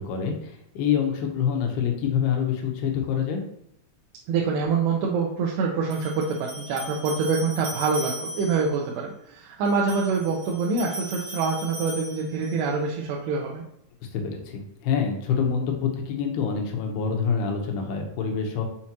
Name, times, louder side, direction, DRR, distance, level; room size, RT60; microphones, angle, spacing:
voice 1, 0.0-3.4 14.1-18.6, left 7 dB, 80° left, 2 dB, 2.9 m, -26 dB
voice 2, 4.3-13.6, right 4 dB, 85° right, -2 dB, 2.9 m, -25 dB
sound 1, 5.9-8.7 9.6-12.7, equal, 60° right, 1.9 m, -38 dB
6.2 x 6.0 x 2.9 m, 0.77 s
omnidirectional pair, 4.7 m